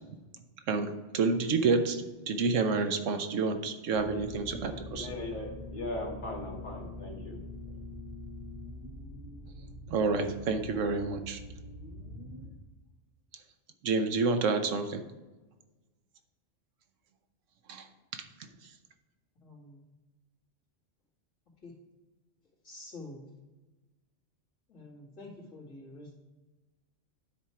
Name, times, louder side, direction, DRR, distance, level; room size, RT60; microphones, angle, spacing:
voice 1, 0.7-5.1 9.9-11.4 13.8-15.0 17.7-17.9 18.1-18.2, right 4 dB, 80° right, 7 dB, 1.1 m, -29 dB
sound 1, 3.9-12.5, left 1 dB, 15° right, 2.1 m, -44 dB
voice 2, 4.9-7.4 7.7-7.8, left 2 dB, 40° left, -2 dB, 1.9 m, -39 dB
voice 3, 19.4-19.8 21.6-21.7 22.6-23.2 24.7-26.2, left 2 dB, 85° left, -4 dB, 2.4 m, -47 dB
9.2 x 4.3 x 4.8 m, 1.2 s
omnidirectional pair, 1.3 m